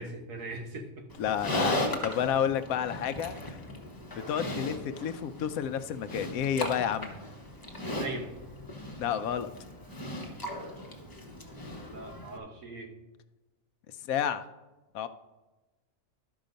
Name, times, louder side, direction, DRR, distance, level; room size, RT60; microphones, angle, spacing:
voice 1, 0.0-1.1 7.8-8.4 11.9-12.9, right 2 dB, 70° right, 4 dB, 1.5 m, -40 dB
Livestock farm animals working animals, 1.1-12.4, left 1 dB, 15° left, 1.0 m, -37 dB
voice 2, 1.2-3.6 4.3-7.1 9.0-9.5 14.0-14.4 14.9-15.1, left 9 dB, 85° left, 11 dB, 1.0 m, -30 dB
12.0 x 5.6 x 5.2 m, 1.1 s
omnidirectional pair, 1.4 m